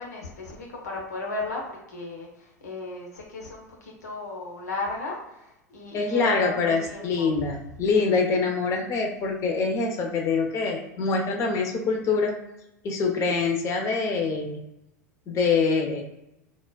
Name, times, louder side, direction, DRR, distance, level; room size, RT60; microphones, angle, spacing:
voice 1, 0.0-1.6 1.9-2.3 2.6-5.2 5.7-7.3, left 3 dB, 70° left, -1 dB, 1.0 m, -34 dB
voice 2, 5.9-12.3 12.8-14.6 15.3-16.0, left 4 dB, 35° left, 2 dB, 0.8 m, -25 dB
4.1 x 2.4 x 2.3 m, 0.87 s
figure-of-eight pair, 85°, 9 cm